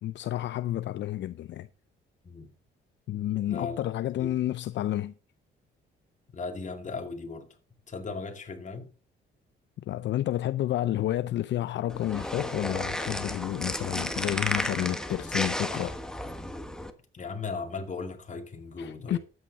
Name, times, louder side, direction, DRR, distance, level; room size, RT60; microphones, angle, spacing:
voice 1, 0.0-1.7 3.1-5.1 9.9-16.0 18.8-19.2, left 13 dB, 65° left, 0.5 m, -30 dB
voice 2, 3.5-3.8 4.2-4.3 6.3-7.5 7.9-8.9 17.1-19.2, left 4 dB, 40° left, 2.3 m, -37 dB
sound 1, 11.9-16.9, left 1 dB, 5° left, 1.5 m, -33 dB
12.5 x 8.8 x 4.0 m
cardioid pair, 90°, 20 cm